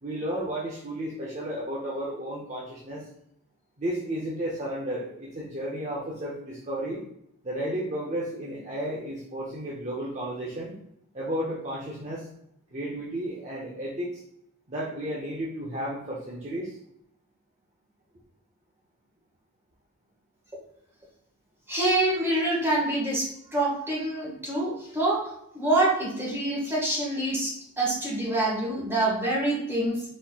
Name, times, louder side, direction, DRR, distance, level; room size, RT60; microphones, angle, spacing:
voice 1, 0.0-3.1 3.8-7.0 7.4-10.7 11.1-12.3 12.7-14.1 14.7-16.8, right 1 dB, 30° right, -5 dB, 0.7 m, -33 dB
voice 2, 21.7-25.2 25.5-30.0, right 2 dB, 10° right, -6 dB, 1.6 m, -26 dB
4.2 x 4.2 x 2.4 m, 0.76 s
head